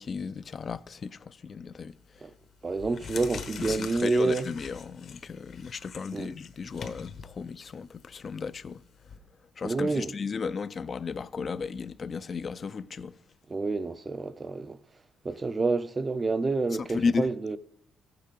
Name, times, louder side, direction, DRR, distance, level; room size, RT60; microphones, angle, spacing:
voice 1, 0.0-2.2 3.6-8.8 9.6-13.2 16.8-17.3, left 5 dB, 45° left, 0.4 m, -34 dB
sound 1, 1.9-2.2 2.7-9.2, left 6 dB, 65° left, 1.1 m, -43 dB
voice 2, 2.6-4.5 6.1-6.3 9.6-10.1 13.5-14.8 15.2-17.6, right 3 dB, 30° right, 0.5 m, -28 dB
14.5 x 6.7 x 5.3 m
cardioid pair, 90°, 0 cm